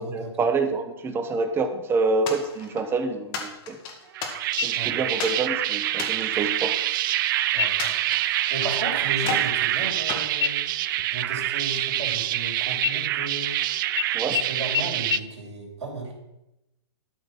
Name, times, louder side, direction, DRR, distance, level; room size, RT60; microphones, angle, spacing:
voice 1, 0.0-3.8 4.6-6.7 14.1-14.4, right 3 dB, 15° right, 7 dB, 1.1 m, -27 dB
sound 1, 2.3-2.9 3.3-4.7 5.2-5.4 5.9-7.3 7.8-8.8 9.2-9.6 10.1-11.1, left 4 dB, 35° left, 2.0 m, -34 dB
sound 2, 4.1-15.2, right 14 dB, 50° right, 0.4 m, -26 dB
sound 3, 4.6-5.2 5.6-5.7 6.3-6.8 7.5-8.0 8.4-8.7 9.0-10.1 10.4-12.4 12.8-13.6 14.0-14.1 14.3-14.4 14.7-14.8 15.1-15.2, left 10 dB, 80° left, 0.6 m, -31 dB
voice 2, 7.5-7.9 8.5-10.6 11.1-13.6 14.3-16.1, right 3 dB, 90° right, 2 dB, 3.3 m, -34 dB
12.5 x 5.2 x 6.0 m, 0.91 s
hypercardioid pair, 135°, 14 cm